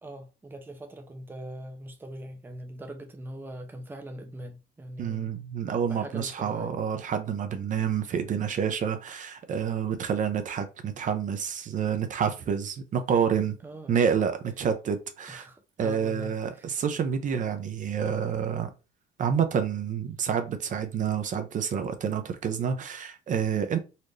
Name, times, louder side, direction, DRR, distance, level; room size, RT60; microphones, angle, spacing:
voice 1, 0.0-5.4 5.7-6.7 13.6-14.0 15.3-16.7, right 1 dB, 10° right, 0.7 m, -41 dB
voice 2, 5.0-13.6 13.9-15.5 15.8-18.7 19.2-23.8, right 7 dB, 50° right, 0.8 m, -28 dB
4.1 x 2.6 x 3.2 m
cardioid pair, 110°, 17 cm